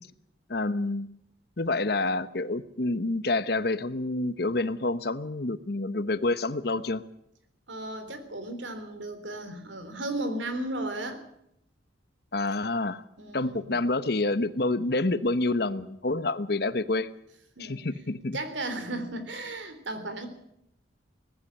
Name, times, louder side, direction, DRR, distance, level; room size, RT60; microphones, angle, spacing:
voice 1, 0.5-1.1 1.6-7.0 12.3-13.0 13.3-17.1 17.6-18.4, left 2 dB, 55° left, 14 dB, 1.0 m, -28 dB
voice 2, 7.7-11.2 13.2-13.8 17.6-17.8 18.3-20.3, right 2 dB, 75° right, 9 dB, 3.6 m, -35 dB
18.5 x 15.5 x 9.8 m, 0.76 s
head